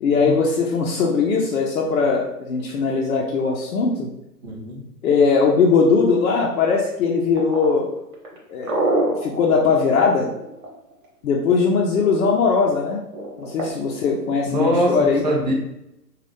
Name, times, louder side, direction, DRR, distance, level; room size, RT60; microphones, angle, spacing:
voice 1, 0.0-4.1 5.0-7.9 8.5-10.3 11.2-13.0 13.4-15.2, left 5 dB, 60° left, -3 dB, 0.6 m, -20 dB
voice 2, 4.4-4.8 14.4-15.5, equal, 25° right, -3 dB, 0.5 m, -22 dB
sound 1, 7.4-11.0 13.1-13.7, right 2 dB, 50° right, 1.2 m, -25 dB
2.6 x 2.3 x 3.4 m, 0.86 s
hypercardioid pair, 150°, 49 cm